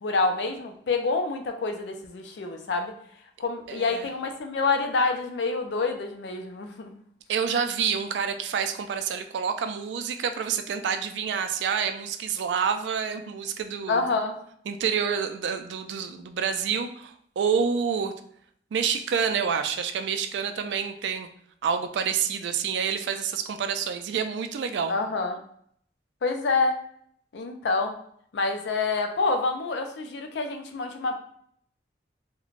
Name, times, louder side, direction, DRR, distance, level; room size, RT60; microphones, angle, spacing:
voice 1, 0.0-2.9 3.4-6.9 13.9-14.4 24.9-25.4 26.2-26.8 27.3-28.0 28.3-31.2, left 3 dB, 80° left, 5 dB, 0.4 m, -27 dB
voice 2, 3.7-4.1 7.3-14.0 14.7-18.1 18.7-21.3 21.6-25.0, right 6 dB, 85° right, 8 dB, 0.3 m, -28 dB
2.4 x 2.1 x 3.1 m, 0.65 s
head